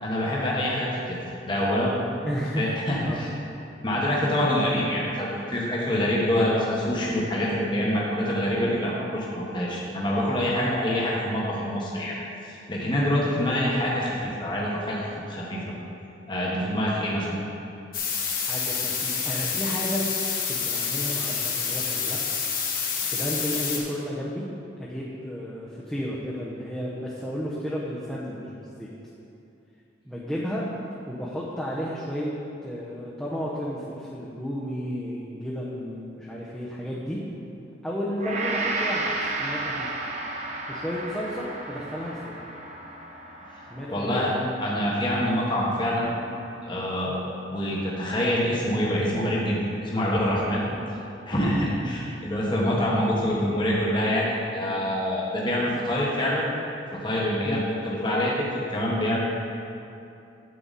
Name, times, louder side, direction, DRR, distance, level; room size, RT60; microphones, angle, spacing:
voice 1, 0.0-1.2 1.4-1.9 2.6-3.3 3.8-12.1 12.4-15.6 16.3-17.3 43.5-46.1 46.7-47.2 47.5-50.6 51.3-56.5 56.9-59.2, left 1 dB, 25° left, -5 dB, 1.3 m, -26 dB
voice 2, 2.2-2.7 3.0-3.2 10.6-10.8 18.5-20.0 20.5-22.2 22.7-24.5 24.8-28.9 30.1-30.7 31.1-32.3 32.6-37.2 37.8-39.9 40.7-42.3 43.7-44.3 50.7-50.9 51.7-51.9 55.6-55.8 57.4-57.7, equal, 5° left, -7 dB, 0.9 m, -33 dB
sound 1, 17.9-23.8, left 6 dB, 50° left, 1.4 m, -28 dB
Gong, 38.2-46.5 47.0-47.1, right 2 dB, 40° right, 1.0 m, -33 dB
9.5 x 7.9 x 4.1 m, 2.7 s
head